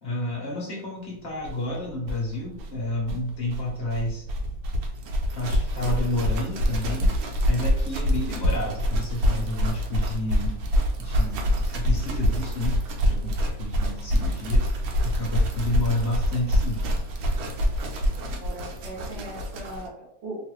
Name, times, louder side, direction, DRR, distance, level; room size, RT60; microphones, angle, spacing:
voice 1, 0.0-4.2 5.3-7.2 7.5-10.6 11.0-14.7 15.0-16.9, left 1 dB, 55° left, -3 dB, 0.7 m, -30 dB
sound 1, 1.4-1.5 1.7-1.8 2.0-19.9, equal, 90° right, 1.4 m, -26 dB
voice 2, 18.1-20.4, right 1 dB, 50° right, -2 dB, 0.8 m, -39 dB
3.0 x 2.4 x 3.0 m, 0.75 s
omnidirectional pair, 2.1 m